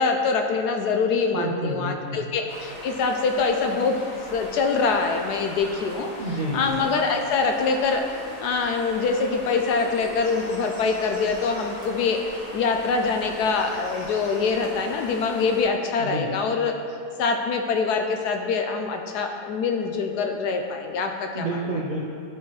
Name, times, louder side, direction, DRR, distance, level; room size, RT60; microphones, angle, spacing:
voice 1, 0.0-4.0 4.3-6.1 6.5-8.0 8.4-12.2 12.5-16.7 17.2-21.6, left 4 dB, 75° left, 4 dB, 1.1 m, -24 dB
voice 2, 1.3-2.3 6.2-6.8 16.0-16.3 21.3-22.0, right 2 dB, 50° right, -4 dB, 0.5 m, -29 dB
sound 1, 2.5-15.6, equal, 30° left, 2.2 m, -39 dB
12.5 x 4.4 x 3.1 m, 2.3 s
omnidirectional pair, 1.8 m